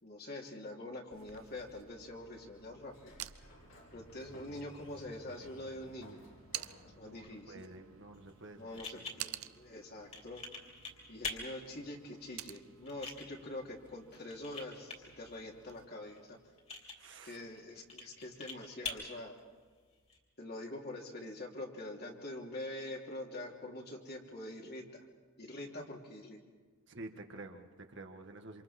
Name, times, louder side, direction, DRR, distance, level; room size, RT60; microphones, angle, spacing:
voice 1, 0.0-3.1 3.9-6.2 6.8-7.7 8.5-10.4 11.1-16.4 17.2-19.3 20.4-25.0 25.4-26.4, left 1 dB, 50° left, 0 dB, 3.0 m, -45 dB
sound 1, 1.1-15.9, right 13 dB, 80° right, 0.6 m, -51 dB
Sliding door, 2.8-8.5, left 1 dB, 65° left, 4.8 m, -58 dB
voice 2, 7.0-9.1 17.0-17.4 26.9-28.6, right 2 dB, 60° right, 4 dB, 1.7 m, -50 dB
sound 2, 8.1-20.2, left 3 dB, 30° left, 3.3 m, -47 dB
27.5 x 27.0 x 4.4 m, 1.5 s
head